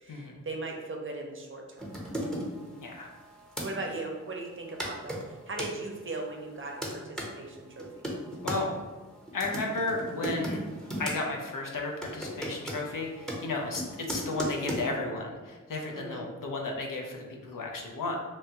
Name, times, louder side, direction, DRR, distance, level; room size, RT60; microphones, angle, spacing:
voice 1, 0.0-2.0 3.6-8.1 15.9-16.3, right 2 dB, 40° right, 1 dB, 0.6 m, -38 dB
sound 1, 1.8-3.7 4.5-4.6 4.8-5.7 6.4-7.3 7.8-8.6 9.3-11.2 11.5-11.7 12.0-14.8, equal, ahead, 0.8 m, -36 dB
voice 2, 9.3-10.6 11.0-18.1, left 2 dB, 80° left, 0 dB, 0.6 m, -33 dB
3.1 x 2.2 x 2.8 m, 1.3 s
cardioid pair, 55°, 32 cm